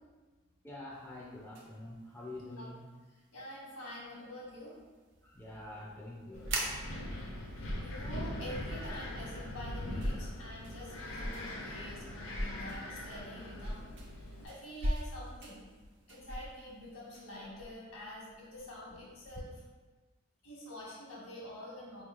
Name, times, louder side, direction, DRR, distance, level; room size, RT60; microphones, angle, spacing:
voice 1, 0.6-2.8 5.2-6.6 9.8-10.1, left 1 dB, 10° left, -5 dB, 0.4 m, -46 dB
sound 1, 0.9-17.4, right 3 dB, 55° right, 0.5 m, -49 dB
voice 2, 3.3-4.8 7.5-15.6 16.1-19.6 20.4-22.0, left 1 dB, 75° left, -5 dB, 1.2 m, -47 dB
sound 2, 5.3-19.4, equal, 80° right, 1.0 m, -44 dB
Wind, 6.3-14.5, left 1 dB, 60° left, 0.6 m, -42 dB
4.5 x 3.0 x 2.4 m, 1.3 s
head